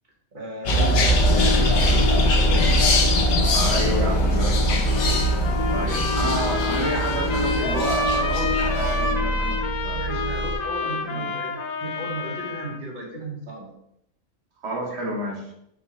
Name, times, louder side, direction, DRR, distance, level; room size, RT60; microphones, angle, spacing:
voice 1, 0.3-2.6 9.9-13.7, right 1 dB, 40° right, -2 dB, 1.2 m, -35 dB
sound 1, 0.7-9.1, equal, 65° left, 1.0 m, -22 dB
sound 2, 1.1-10.5, left 1 dB, 20° right, 0.7 m, -25 dB
voice 2, 3.5-5.3 5.7-10.0 10.8-11.3 14.6-15.5, right 2 dB, 60° right, 0 dB, 1.1 m, -31 dB
Trumpet, 4.9-12.8, left 3 dB, 80° left, 0.3 m, -29 dB
4.9 x 2.3 x 4.1 m, 0.77 s
omnidirectional pair, 1.3 m